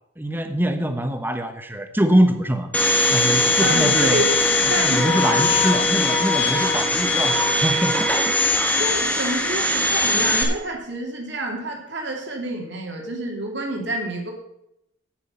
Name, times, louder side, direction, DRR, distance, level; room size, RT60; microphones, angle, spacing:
voice 1, 0.2-2.7 3.1-4.2 4.8-8.0 8.2-8.3, right 1 dB, 10° right, 8 dB, 1.0 m, -23 dB
Domestic sounds home sounds, 2.7-10.4, left 2 dB, 10° left, 1.4 m, -20 dB
voice 2, 3.6-4.3 4.7-5.5 8.8-14.3, right 1 dB, 60° right, 1 dB, 2.4 m, -28 dB
9.9 x 8.9 x 5.6 m, 0.81 s
head